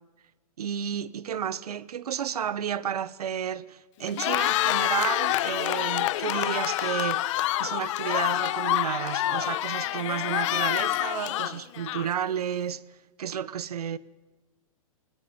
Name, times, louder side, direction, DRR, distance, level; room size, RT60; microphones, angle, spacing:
voice 1, 0.6-7.3 7.6-12.8 13.2-14.0, right 9 dB, 85° right, 1.0 m, -32 dB
Cheering, 4.0-12.3, left 16 dB, 55° left, 0.9 m, -27 dB
sound 1, 6.4-6.9 7.2-7.3 8.1-9.5 9.8-10.0 10.4-11.1, right 5 dB, 20° right, 7.1 m, -56 dB
17.0 x 15.5 x 9.9 m
hypercardioid pair, 130°, 19 cm